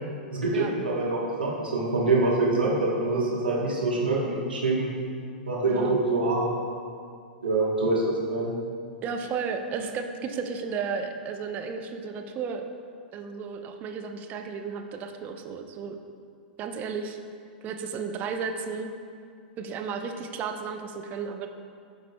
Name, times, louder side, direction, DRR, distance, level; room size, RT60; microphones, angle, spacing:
voice 1, 0.3-4.9 5.5-6.5 7.4-8.5, right 2 dB, 85° right, -5 dB, 1.1 m, -25 dB
voice 2, 5.6-6.0 9.0-12.6 13.1-16.0 16.6-17.2 17.6-18.9 19.6-21.5, right 5 dB, 35° right, 6 dB, 0.5 m, -33 dB
11.0 x 3.9 x 2.2 m, 2.3 s
figure-of-eight pair, 100°, 5 cm